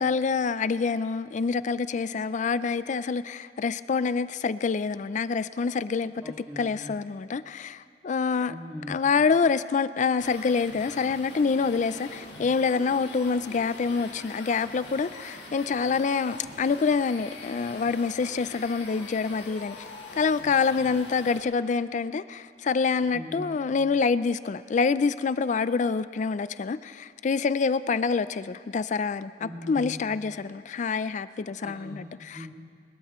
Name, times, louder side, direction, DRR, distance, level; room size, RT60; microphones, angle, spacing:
voice 1, 0.0-6.1 6.6-8.5 8.9-19.8 20.2-32.4, left 5 dB, 40° left, 15 dB, 0.3 m, -26 dB
voice 2, 6.1-7.0 8.5-9.1 23.1-23.6 29.4-30.1 31.6-32.5, equal, 10° right, -6 dB, 2.0 m, -40 dB
sound 1, 10.1-21.4, left 2 dB, 75° left, 2.3 m, -43 dB
22.0 x 21.0 x 3.1 m, 2.2 s
head